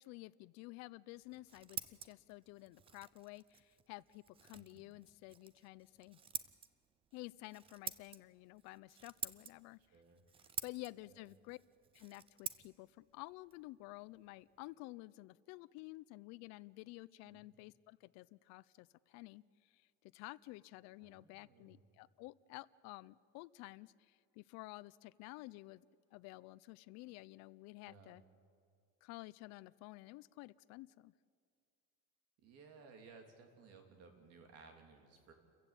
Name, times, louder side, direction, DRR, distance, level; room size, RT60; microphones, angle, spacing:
voice 1, 0.0-6.2 7.1-9.8 10.6-11.6 11.9-19.9 20.1-25.8 26.1-28.2 29.0-31.1, left 21 dB, 60° left, 17 dB, 0.5 m, -52 dB
Scissors, 1.2-14.7, right 7 dB, 20° right, 0.5 m, -50 dB
voice 2, 4.5-4.9 9.8-10.2 11.1-11.3 17.2-17.5 21.0-21.8 27.8-28.1 32.4-35.3, right 4 dB, 55° right, 5 dB, 3.1 m, -60 dB
28.5 x 15.0 x 8.4 m, 2.3 s
cardioid pair, 170°, 30 cm